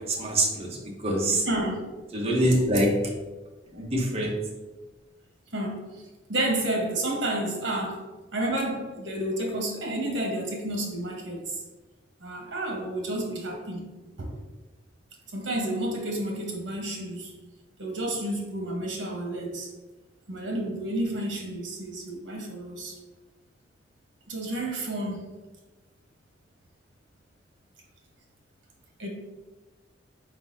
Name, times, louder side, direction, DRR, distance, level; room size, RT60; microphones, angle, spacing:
voice 1, 0.0-1.4 2.1-2.9 3.7-4.4, right 1 dB, 35° right, -1 dB, 0.9 m, -25 dB
voice 2, 1.4-1.8 3.7-3.9 5.5-5.8 6.3-8.1 8.3-11.5 12.2-13.8 14.2-14.4 15.3-17.3 17.8-19.7 20.3-22.9 24.3-25.2 29.0-29.1, right 1 dB, 75° right, 1 dB, 1.0 m, -30 dB
4.3 x 3.9 x 2.6 m, 1.2 s
head